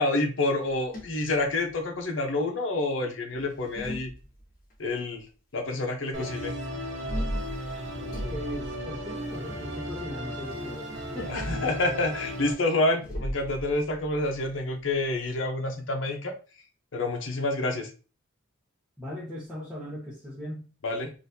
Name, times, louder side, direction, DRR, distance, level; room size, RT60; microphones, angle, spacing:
voice 1, 0.0-4.1 4.8-5.2 5.5-6.5 11.3-16.3 16.9-17.9 20.8-21.1, left 2 dB, 70° left, 3 dB, 0.8 m, -28 dB
sound 1, 0.6-2.0 3.3-4.7 6.9-9.5 11.1-11.8 13.0-15.4, equal, 45° left, 1.2 m, -37 dB
voice 2, 6.1-6.8 8.2-11.6 19.0-20.7, left 1 dB, 5° right, -9 dB, 1.0 m, -39 dB
Musical instrument, 6.1-12.5, equal, 75° right, 0.8 m, -35 dB
4.0 x 2.6 x 2.7 m, 0.35 s
head